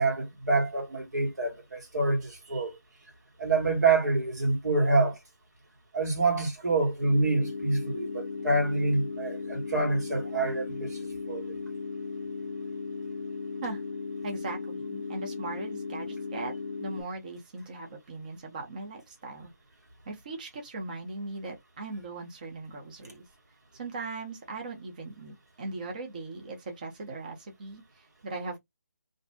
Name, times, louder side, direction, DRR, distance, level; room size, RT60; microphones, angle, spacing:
voice 1, 0.0-2.8 3.4-5.2 5.9-11.6, right 3 dB, 85° right, 1.5 m, -27 dB
sound 1, 7.0-17.0, left 4 dB, 45° left, 0.4 m, -36 dB
voice 2, 14.2-19.5 20.1-23.2 23.7-28.6, right 3 dB, 30° right, 0.6 m, -39 dB
2.6 x 2.0 x 3.3 m
figure-of-eight pair, 170°, 9 cm